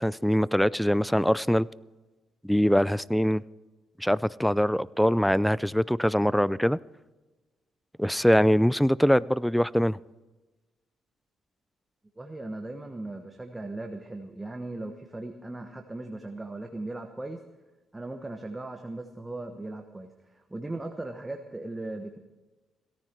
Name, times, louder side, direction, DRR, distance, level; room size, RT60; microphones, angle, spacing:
voice 1, 0.0-1.7 2.4-3.4 4.0-6.8 8.0-10.0, equal, ahead, 0.4 m, -23 dB
voice 2, 12.2-17.4 17.9-22.2, right 2 dB, 15° right, 1.2 m, -38 dB
17.5 x 14.0 x 4.5 m
cardioid pair, 90°, 0 cm